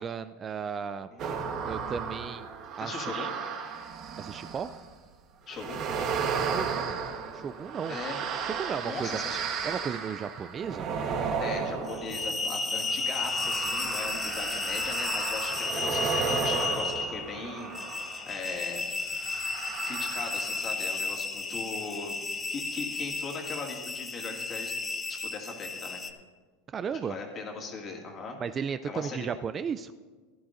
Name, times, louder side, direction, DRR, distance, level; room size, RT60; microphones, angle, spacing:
voice 1, 0.0-1.1 1.7-2.5 2.8-3.3 4.2-4.7 6.3-7.0 7.3-9.2 9.6-11.0 26.7-27.2 28.4-29.9, right 7 dB, 25° right, 12 dB, 0.3 m, -35 dB
sound 1, 1.2-4.9 5.5-18.3 19.1-20.7 21.0-21.1, right 6 dB, 45° right, 1.2 m, -34 dB
voice 2, 2.8-3.3 5.5-5.8 7.9-8.2 8.8-9.4 11.4-18.9 19.9-22.2 22.5-24.8 25.1-26.0 26.9-28.4 28.7-29.3, left 4 dB, 30° left, 1 dB, 2.2 m, -39 dB
sound 2, 11.9-26.1, left 3 dB, 15° left, 0.7 m, -33 dB
16.0 x 11.5 x 2.6 m, 1.4 s
supercardioid pair, 125°, 0 cm